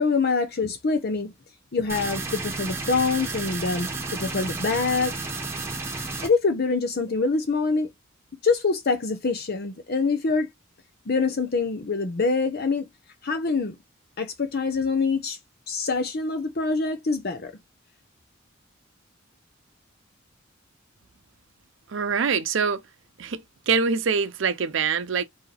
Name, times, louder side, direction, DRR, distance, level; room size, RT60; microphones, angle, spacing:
voice 1, 0.0-1.3 1.7-5.4 6.2-7.9 8.4-10.5 11.1-12.8 13.2-13.7 14.2-15.4 15.7-17.5, left 4 dB, 50° left, 0.7 m, -25 dB
sound 1, 1.9-6.3, right 3 dB, 10° right, 1.2 m, -32 dB
voice 2, 21.9-22.8 23.2-25.2, right 5 dB, 65° right, 0.6 m, -24 dB
4.6 x 2.9 x 3.3 m
head